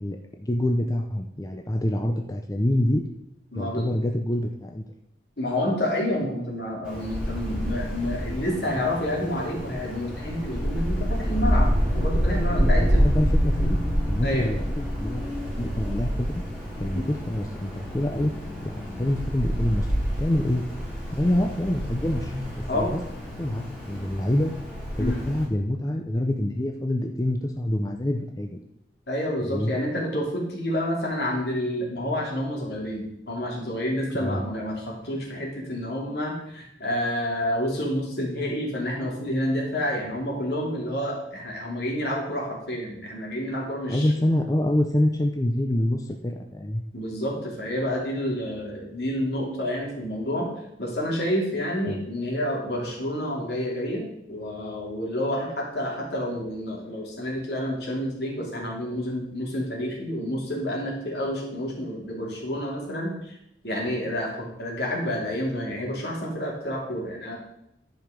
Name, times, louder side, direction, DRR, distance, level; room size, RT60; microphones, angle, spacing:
voice 1, 0.0-3.0 3.6-4.8 12.6-13.8 14.1-15.3 15.6-16.4 16.8-18.3 18.6-19.9 20.2-20.6 21.1-22.3 22.7-23.0 23.4-24.5 24.9-28.6 29.4-29.7 34.2-34.4 43.9-46.8 51.9-52.0, left 1 dB, 20° left, 3 dB, 0.6 m, -26 dB
voice 2, 3.5-3.9 5.4-13.0 14.2-14.5 16.9-17.1 22.7-22.9 25.0-25.2 29.1-44.1 46.9-50.5 50.8-63.4 63.6-67.4, left 1 dB, 65° left, -2 dB, 2.8 m, -29 dB
Wind, 6.8-25.4, equal, 5° right, 3.7 m, -27 dB
11.0 x 5.1 x 5.1 m, 0.82 s
head